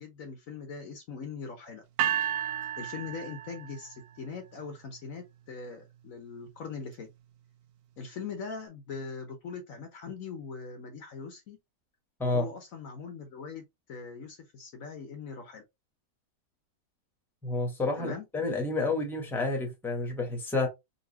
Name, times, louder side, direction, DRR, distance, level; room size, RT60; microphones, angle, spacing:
voice 1, 0.0-1.8 2.8-7.1 8.0-11.6 12.2-15.6 18.0-18.3, left 5 dB, 60° left, 1.2 m, -41 dB
sound 1, 2.0-4.1, right 10 dB, 75° right, 1.1 m, -32 dB
voice 2, 17.4-20.7, left 3 dB, ahead, 1.1 m, -30 dB
4.0 x 2.8 x 2.8 m
omnidirectional pair, 1.7 m